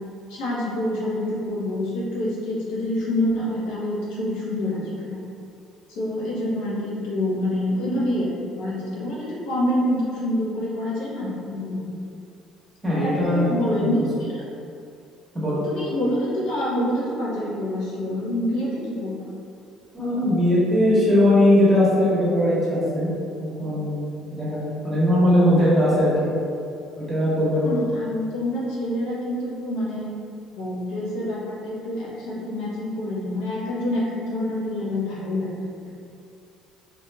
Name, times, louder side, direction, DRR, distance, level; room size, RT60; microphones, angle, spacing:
voice 1, 0.3-5.2 5.9-8.3 8.6-11.9 13.0-14.3 15.6-19.3 27.6-30.1 30.5-35.5 35.9-36.0, left 1 dB, 85° left, -7 dB, 0.8 m, -27 dB
voice 2, 12.8-13.5 13.8-14.0 15.3-15.6 19.9-23.1 23.4-26.3 26.9-27.7, left 1 dB, 15° right, -9 dB, 1.2 m, -20 dB
3.5 x 2.5 x 2.2 m, 2.6 s
cardioid pair, 105°, 0 cm